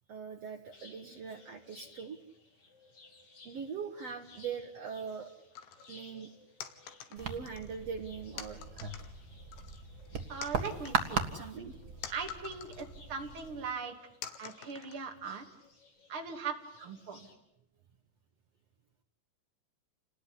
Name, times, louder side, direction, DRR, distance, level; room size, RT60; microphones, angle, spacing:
voice 1, 0.1-2.2 3.4-5.3 5.9-6.3 7.1-8.6 11.3-11.7, right 6 dB, 85° right, 4 dB, 1.4 m, -41 dB
sound 1, 0.7-17.4, left 3 dB, 35° left, 3.9 m, -60 dB
sound 2, 5.6-5.9 6.6-7.8 8.4-9.1 9.5-10.1 10.4-12.9 13.4-13.5 14.2-15.3, left 9 dB, 85° left, 3.9 m, -47 dB
sound 3, 7.2-13.7, right 4 dB, 55° right, 1.1 m, -38 dB
voice 2, 10.3-11.2 12.1-13.9 14.4-15.4 16.1-17.3, right 5 dB, 35° right, 3 dB, 3.0 m, -39 dB
29.0 x 20.0 x 9.9 m, 0.81 s
omnidirectional pair, 5.0 m